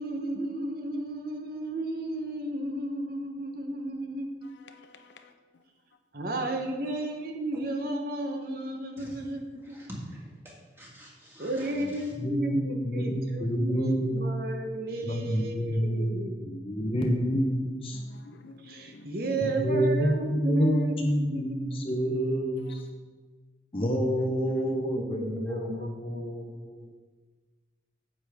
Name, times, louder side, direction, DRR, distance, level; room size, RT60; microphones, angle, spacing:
voice 1, 0.0-4.6 6.1-9.8 11.4-17.0 18.6-21.8 24.6-26.2, right 1 dB, 50° right, 0.9 m, -33 dB
voice 2, 4.6-5.3 17.9-19.1, left 3 dB, 70° left, 0.7 m, -51 dB
voice 3, 9.6-12.1, equal, 15° right, 1.9 m, -46 dB
voice 4, 12.2-14.3 15.0-18.0 19.2-19.3 19.6-22.8 23.7-26.9, equal, 30° left, 0.7 m, -28 dB
9.3 x 7.4 x 3.5 m
head